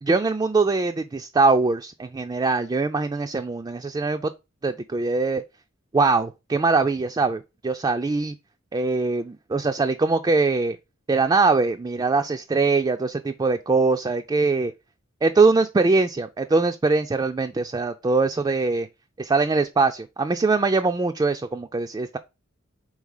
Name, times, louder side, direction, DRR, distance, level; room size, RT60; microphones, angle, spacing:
voice 1, 0.0-4.3 4.6-5.4 5.9-8.3 8.7-10.8 11.1-14.7 15.2-18.9 19.2-22.2, right 3 dB, 20° right, 0.3 m, -22 dB
4.7 x 4.0 x 5.4 m
head